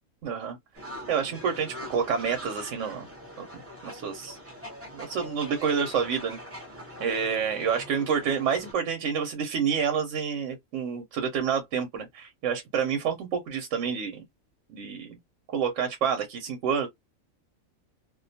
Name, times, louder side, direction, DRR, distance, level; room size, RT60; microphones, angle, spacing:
voice 1, 0.2-0.6 1.1-3.1 3.4-4.4 4.9-6.4 7.0-14.2 14.7-15.2 15.5-16.9, right 7 dB, 70° right, 0.9 m, -28 dB
sound 1, 0.7-8.7, equal, 15° right, 0.4 m, -43 dB
2.4 x 2.2 x 2.6 m
omnidirectional pair, 1.5 m